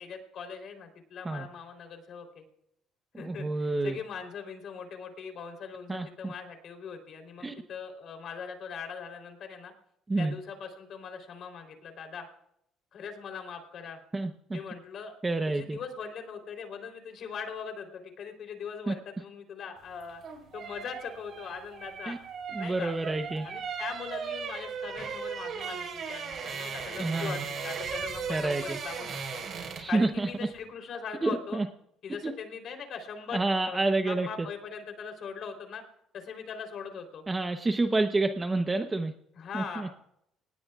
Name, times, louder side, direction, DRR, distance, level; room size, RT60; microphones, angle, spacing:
voice 1, 0.0-2.4 3.2-9.7 10.2-12.3 12.9-14.0 14.5-15.2 15.5-20.2 20.5-22.2 22.6-22.9 23.4-29.4 29.9-31.6 32.0-33.8 34.1-35.8 36.1-37.2 39.4-39.9, left 6 dB, 50° left, 5 dB, 3.6 m, -41 dB
voice 2, 3.2-4.0 5.9-6.3 7.4-7.5 10.1-10.3 14.1-14.6 15.2-15.8 18.9-19.0 22.1-22.2 22.5-23.5 27.0-27.4 28.3-28.8 29.8-30.3 31.2-31.7 32.2-32.3 33.3-34.5 37.3-39.1 39.5-39.9, right 2 dB, 15° right, 6 dB, 0.9 m, -29 dB
sound 1, 20.0-30.0 30.3-30.5, right 6 dB, 45° right, 5.2 m, -37 dB
26.5 x 19.0 x 2.5 m, 0.76 s
cardioid pair, 125°, 0 cm